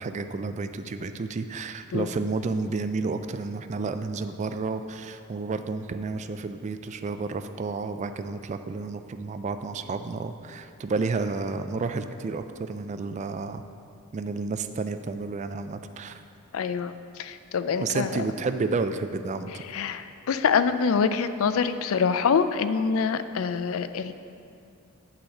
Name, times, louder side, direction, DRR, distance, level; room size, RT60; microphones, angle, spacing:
voice 1, 0.0-13.6 14.1-16.2 17.8-19.6, right 4 dB, 30° right, 9 dB, 0.3 m, -31 dB
voice 2, 16.5-18.2 19.7-24.1, left 6 dB, 65° left, 12 dB, 0.4 m, -25 dB
8.8 x 4.0 x 7.0 m, 2.6 s
head